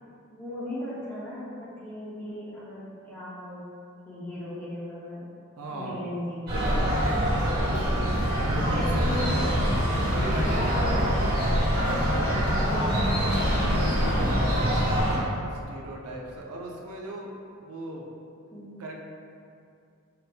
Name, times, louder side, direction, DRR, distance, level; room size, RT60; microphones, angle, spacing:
voice 1, 0.3-3.6 4.0-5.3 5.7-6.9 8.5-9.4 12.2-15.2 18.5-18.7, left 1 dB, 10° left, -10 dB, 1.0 m, -37 dB
voice 2, 5.6-6.1 6.4-7.5 8.4-11.2 14.8-17.3 17.6-18.1 18.8-18.9, right 1 dB, 80° right, -1 dB, 0.6 m, -38 dB
sound 1, 6.5-15.2, equal, 45° right, 1.4 m, -24 dB
6.1 x 2.3 x 3.3 m, 2.5 s
head